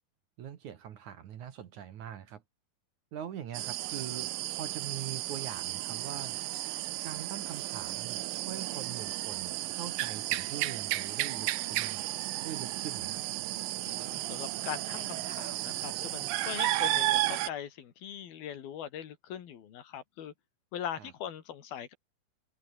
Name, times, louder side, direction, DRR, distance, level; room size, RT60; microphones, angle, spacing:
voice 1, 0.4-2.4 3.1-6.4 7.0-12.1 12.4-13.2 21.0-21.1, right 9 dB, 60° right, 2.6 m, -43 dB
sound 1, 3.5-17.5, right 16 dB, 75° right, 2.5 m, -33 dB
voice 2, 13.8-20.3 20.7-21.9, left 9 dB, 70° left, 4.0 m, -41 dB
omnidirectional pair, 4.5 m